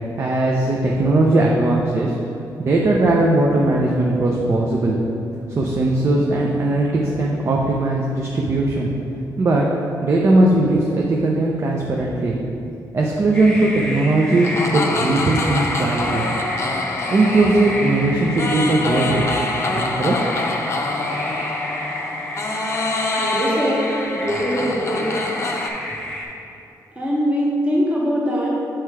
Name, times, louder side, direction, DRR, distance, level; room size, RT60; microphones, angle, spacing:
voice 1, 0.2-2.1 2.6-5.0 5.5-8.9 9.4-9.7 10.0-12.4 12.9-16.2 17.1-19.2 19.7-20.2, right 2 dB, 40° right, -1 dB, 0.6 m, -19 dB
sound 1, 13.3-26.2, equal, 10° left, 1.1 m, -30 dB
sound 2, 14.4-25.7, left 2 dB, 40° left, 0.6 m, -26 dB
voice 2, 23.2-25.1 27.0-28.5, equal, 20° right, -5 dB, 1.1 m, -22 dB
6.5 x 4.5 x 4.8 m, 2.8 s
cardioid pair, 125°, 7 cm